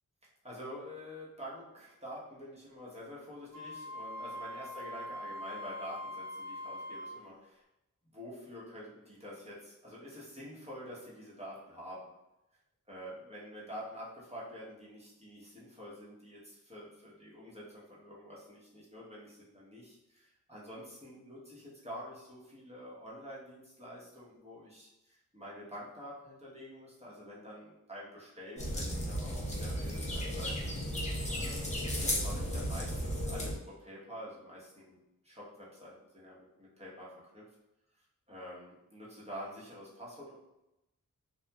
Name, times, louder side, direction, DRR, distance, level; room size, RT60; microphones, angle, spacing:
voice 1, 0.4-7.6 8.1-12.1 12.9-31.8 32.2-37.4 38.3-40.4, equal, 20° right, -6 dB, 1.0 m, -47 dB
Wind instrument woodwind instrument, 3.5-7.3, left 1 dB, 80° right, 0.5 m, -42 dB
sound 1, 28.6-33.5, equal, 20° left, 0.6 m, -34 dB
2.9 x 2.3 x 2.2 m, 0.91 s
wide cardioid pair, 70°, 33 cm